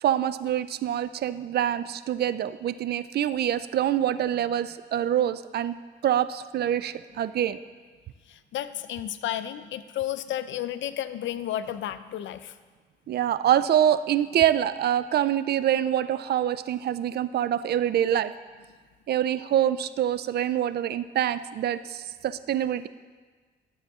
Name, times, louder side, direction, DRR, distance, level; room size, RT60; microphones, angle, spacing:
voice 1, 0.0-5.7 6.0-7.6 13.1-18.3 19.1-22.9, right 10 dB, 55° right, 14 dB, 0.4 m, -25 dB
voice 2, 8.3-12.6, left 11 dB, 70° left, 12 dB, 0.5 m, -32 dB
12.0 x 7.1 x 3.6 m, 1.4 s
cardioid pair, 90°, 20 cm